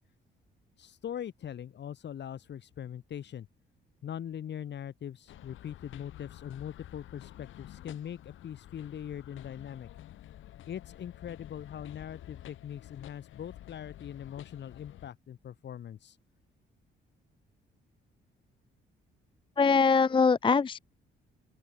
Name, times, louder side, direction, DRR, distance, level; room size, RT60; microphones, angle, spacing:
voice 1, 0.8-3.5 4.0-9.9 10.7-16.2, left 9 dB, 60° left, 3.9 m, -41 dB
sound 1, 5.3-15.1, left 13 dB, 80° left, 2.5 m, -50 dB
voice 2, 19.6-20.8, left 5 dB, 25° left, 0.5 m, -23 dB
open air
cardioid pair, 90°, 20 cm